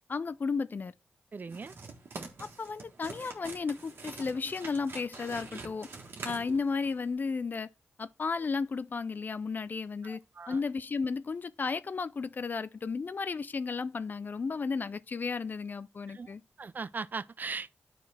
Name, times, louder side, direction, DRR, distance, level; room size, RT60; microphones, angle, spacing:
voice 1, 0.1-0.9 2.4-5.9 6.2-7.7 8.0-10.2 10.5-16.4, left 4 dB, 55° left, 0.4 m, -33 dB
voice 2, 1.3-1.7 10.0-10.6 16.1-16.3 16.6-17.8, right 4 dB, 50° right, 0.5 m, -39 dB
sound 1, 1.5-7.1, right 3 dB, 75° right, 1.5 m, -45 dB
9.7 x 4.2 x 4.3 m
cardioid pair, 45°, 4 cm